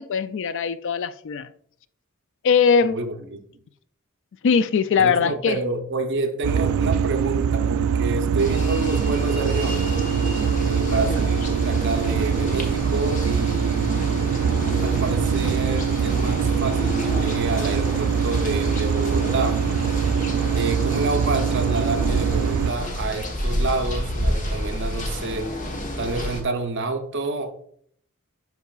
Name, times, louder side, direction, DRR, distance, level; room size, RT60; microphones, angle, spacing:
voice 1, 0.0-1.5 2.4-3.0 4.4-5.6 10.9-11.2, left 6 dB, 60° left, 0.3 m, -21 dB
voice 2, 2.9-3.4 5.0-10.0 10.7-14.3 14.8-19.7 20.6-25.5 26.0-27.5, right 3 dB, 60° right, 0.7 m, -28 dB
sound 1, 6.4-22.7, right 7 dB, 80° right, 0.3 m, -23 dB
sound 2, 8.4-26.4, left 1 dB, 35° left, 1.1 m, -30 dB
11.0 x 4.7 x 2.4 m
head